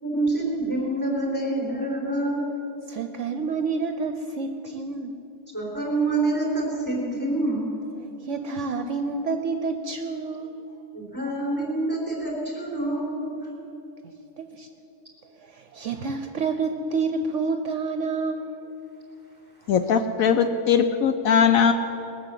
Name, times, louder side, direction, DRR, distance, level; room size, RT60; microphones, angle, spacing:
voice 1, 0.0-2.5 5.5-7.7 10.9-13.3, right 2 dB, 5° left, -3 dB, 3.8 m, -26 dB
voice 2, 2.9-5.1 8.2-10.6 14.4-14.7 15.5-18.6, right 4 dB, 60° right, 7 dB, 0.9 m, -28 dB
voice 3, 19.7-21.7, left 7 dB, 70° left, 8 dB, 1.0 m, -20 dB
20.5 x 6.9 x 8.2 m, 2.9 s
omnidirectional pair, 1.5 m